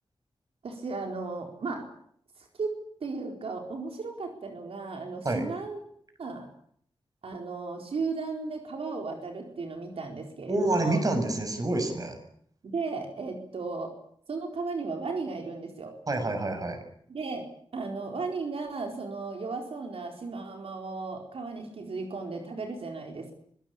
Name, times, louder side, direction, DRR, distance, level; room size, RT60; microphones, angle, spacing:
voice 1, 0.6-1.8 2.6-2.7 3.0-5.8 6.2-6.5 7.2-11.1 12.6-13.9 14.3-15.9 17.1-17.4 17.7-23.3, right 4 dB, 85° right, 3 dB, 4.4 m, -35 dB
voice 2, 10.5-12.1 16.1-16.8, right 2 dB, 40° right, 7 dB, 6.6 m, -27 dB
24.5 x 19.5 x 8.6 m, 0.64 s
wide cardioid pair, 135°, 10 cm